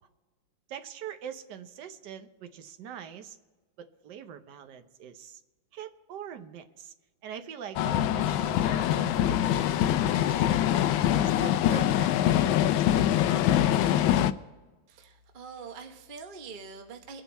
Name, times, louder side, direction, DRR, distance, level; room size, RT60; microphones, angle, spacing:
voice 1, 0.7-3.4 3.8-5.4 5.7-6.9 7.2-10.5 11.2-12.1 12.4-13.8, right 8 dB, 65° right, 8 dB, 1.5 m, -43 dB
sound 1, 7.8-14.3, left 11 dB, 85° left, 1.4 m, -24 dB
voice 2, 14.9-17.2, right 5 dB, 35° right, 4 dB, 0.9 m, -44 dB
24.0 x 8.2 x 4.2 m, 1.2 s
omnidirectional pair, 2.1 m